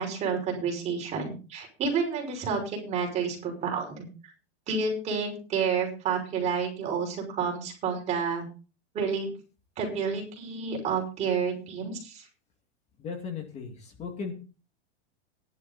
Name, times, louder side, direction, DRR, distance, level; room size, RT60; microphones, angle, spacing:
voice 1, 0.0-4.1 4.7-8.5 8.9-9.3 9.8-12.2, right 5 dB, 20° right, 0 dB, 5.8 m, -30 dB
voice 2, 13.0-14.3, left 5 dB, 20° left, 4 dB, 2.2 m, -36 dB
15.5 x 11.5 x 4.1 m, 0.35 s
supercardioid pair, 175°, 34 cm